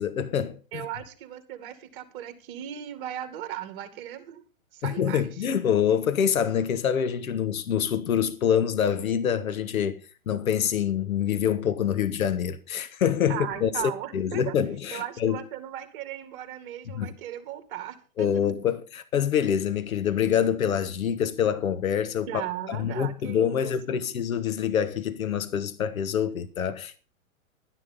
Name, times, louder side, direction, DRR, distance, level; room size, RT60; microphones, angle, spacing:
voice 1, 0.0-0.8 4.8-10.0 10.3-15.4 16.9-17.1 18.2-22.3 22.7-27.0, left 8 dB, 75° left, 1.2 m, -26 dB
voice 2, 0.7-4.4 4.7-5.3 13.3-14.5 14.9-18.5 22.3-24.0, right 11 dB, 40° right, 2.3 m, -37 dB
12.0 x 10.0 x 5.4 m
hypercardioid pair, 140°, 42 cm